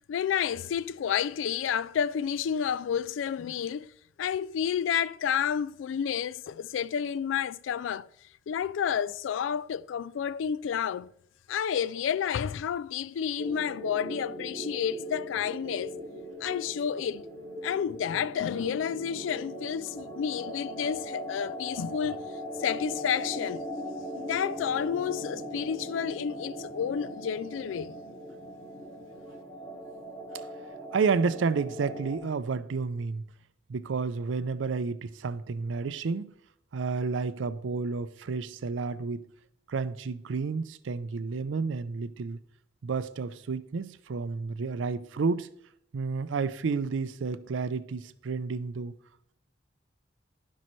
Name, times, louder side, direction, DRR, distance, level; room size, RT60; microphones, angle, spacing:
voice 1, 0.1-3.9 4.2-8.1 8.5-11.1 11.5-16.0 16.4-17.3 17.6-22.2 22.6-23.7 24.1-27.9, left 8 dB, 90° left, 0.3 m, -30 dB
sound 1, 13.4-32.2, equal, 20° left, 2.0 m, -39 dB
voice 2, 30.9-33.3 33.7-36.3 36.7-39.3 39.7-42.4 42.8-45.5 45.9-48.9, right 4 dB, 85° right, 0.4 m, -31 dB
15.0 x 5.5 x 3.1 m
head